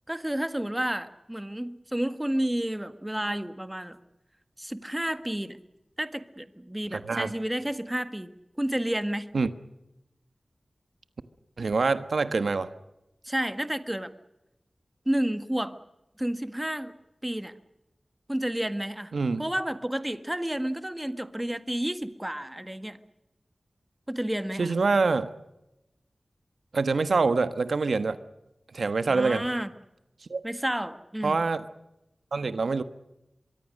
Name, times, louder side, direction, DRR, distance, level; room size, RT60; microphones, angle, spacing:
voice 1, 0.1-4.0 4.6-5.6 6.0-8.3 8.6-9.3 13.2-14.1 15.1-15.8 16.2-16.9 17.2-17.5 18.3-19.1 19.4-23.0 24.1-24.7 29.1-29.7 30.4-31.4, right 1 dB, 15° right, 11 dB, 1.6 m, -30 dB
voice 2, 6.9-7.3 9.3-9.5 11.6-12.7 19.1-19.5 24.6-25.3 26.7-28.2 28.7-29.4 30.3-30.4 31.2-31.6 32.3-32.8, right 4 dB, 85° right, 12 dB, 1.2 m, -25 dB
24.0 x 23.5 x 6.5 m, 0.92 s
wide cardioid pair, 60°, 0 cm